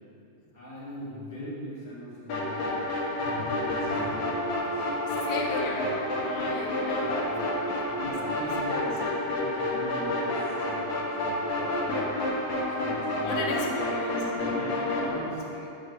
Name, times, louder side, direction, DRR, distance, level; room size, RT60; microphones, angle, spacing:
voice 1, 0.5-2.9 3.2-5.9 6.2-6.5 7.3-7.5 7.9-12.4 12.8-13.5 14.4-15.4, equal, 35° left, -10 dB, 2.3 m, -41 dB
sound 1, 2.3-15.1, left 1 dB, 55° left, 2.6 m, -29 dB
voice 2, 3.2-3.6 3.9-4.3 5.1-8.9 13.1-15.2 15.5-15.7, left 3 dB, 80° left, -1 dB, 1.9 m, -39 dB
11.5 x 4.1 x 6.5 m, 2.9 s
omnidirectional pair, 5.1 m